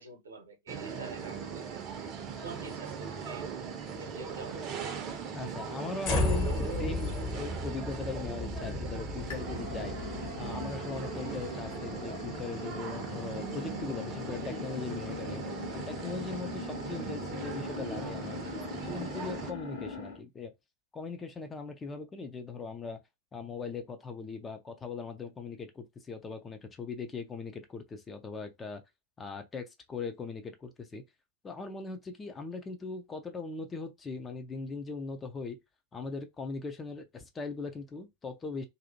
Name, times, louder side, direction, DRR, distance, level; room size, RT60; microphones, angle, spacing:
voice 1, 0.0-1.9 2.4-3.5 3.9-4.6, right 3 dB, 70° right, 0.8 m, -46 dB
sound 1, 0.7-19.5, right 6 dB, 35° right, 0.5 m, -39 dB
voice 2, 5.3-15.4 15.7-18.4 18.8-20.5 20.9-23.0 23.3-28.8 29.2-31.0 31.4-35.6 35.9-38.7, left 4 dB, 20° left, 0.4 m, -40 dB
sound 2, 6.0-12.3, left 2 dB, 40° left, 0.9 m, -35 dB
sound 3, 9.3-20.2, left 4 dB, 65° left, 1.2 m, -41 dB
2.6 x 2.4 x 2.6 m
figure-of-eight pair, 90°, 0 cm